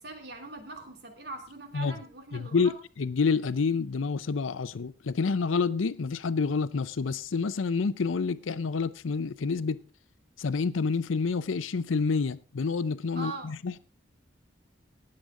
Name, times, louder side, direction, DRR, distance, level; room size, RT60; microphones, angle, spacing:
voice 1, 0.0-2.7 13.1-13.5, right 3 dB, 55° right, 3.0 m, -41 dB
voice 2, 2.3-2.7 3.0-9.8 10.4-13.8, left 4 dB, 85° left, 0.5 m, -28 dB
19.0 x 7.7 x 3.7 m
head